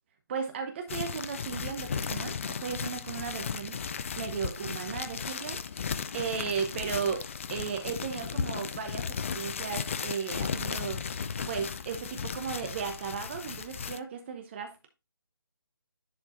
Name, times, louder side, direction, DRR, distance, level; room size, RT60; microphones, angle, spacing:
voice 1, 0.3-3.8 4.2-5.9 6.1-7.2 7.5-14.9, right 6 dB, 30° right, 6 dB, 0.8 m, -35 dB
sound 1, 0.9-14.0, left 6 dB, 30° left, 0.4 m, -35 dB
10.5 x 4.7 x 2.6 m, 0.27 s
figure-of-eight pair, 150°, 13 cm